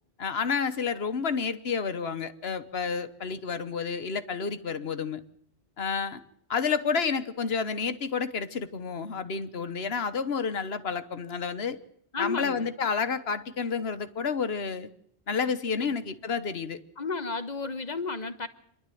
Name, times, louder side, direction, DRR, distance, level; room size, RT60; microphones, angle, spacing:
voice 1, 0.2-5.2 5.8-6.2 6.5-11.8 12.2-14.9 15.3-16.8, left 5 dB, 65° left, 11 dB, 1.3 m, -30 dB
voice 2, 12.1-12.7 15.8-15.9 17.0-18.5, left 4 dB, 40° left, 10 dB, 1.3 m, -33 dB
27.0 x 11.5 x 9.2 m, 0.69 s
omnidirectional pair, 1.1 m